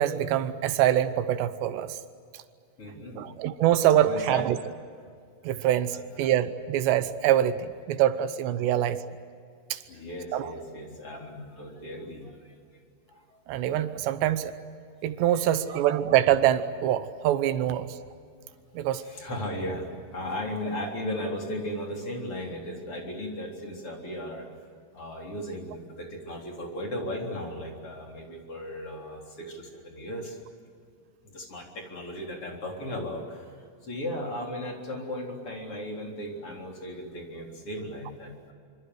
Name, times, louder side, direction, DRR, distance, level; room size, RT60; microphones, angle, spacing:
voice 1, 0.0-2.0 3.2-4.6 5.4-9.0 9.7-9.8 10.3-10.5 13.5-14.5 15.0-17.9 18.8-19.0, right 11 dB, 80° right, 11 dB, 3.1 m, -24 dB
voice 2, 2.8-3.3 4.0-4.4 5.5-6.3 8.6-8.7 9.9-12.5 13.1-13.4 15.1-15.8 19.0-24.5 24.9-30.4 31.2-33.5 33.8-38.5, left 1 dB, 30° left, 1 dB, 4.2 m, -36 dB
25.5 x 25.5 x 8.0 m, 2.2 s
omnidirectional pair, 5.1 m